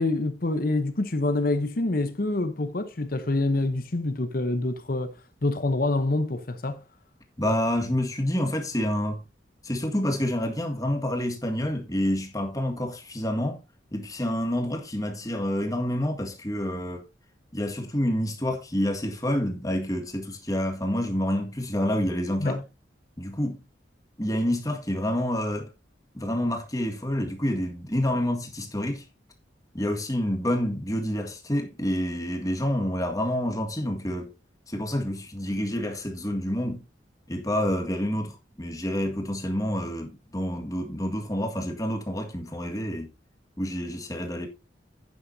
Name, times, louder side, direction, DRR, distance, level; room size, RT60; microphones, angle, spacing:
voice 1, 0.0-5.1 5.4-6.8 22.4-22.6, left 2 dB, 50° left, 0.9 m, -26 dB
voice 2, 7.4-9.2 9.6-13.6 13.9-17.1 17.5-22.6 23.2-23.6 24.2-25.7 26.1-29.0 29.7-34.3 34.7-36.8 37.3-43.1 43.6-44.5, equal, 20° left, 1.8 m, -28 dB
11.0 x 9.4 x 2.8 m
head